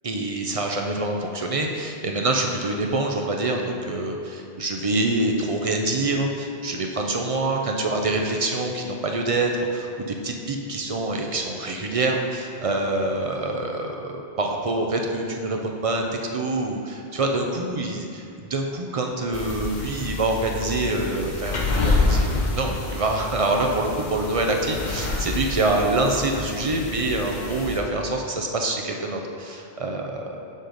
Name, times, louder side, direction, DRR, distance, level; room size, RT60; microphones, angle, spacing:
voice 1, 0.0-18.2 18.5-30.4, right 2 dB, 45° right, 2 dB, 0.5 m, -26 dB
sound 1, 19.3-27.8, left 3 dB, 45° left, 0.8 m, -28 dB
7.5 x 5.0 x 3.9 m, 2.5 s
omnidirectional pair, 1.1 m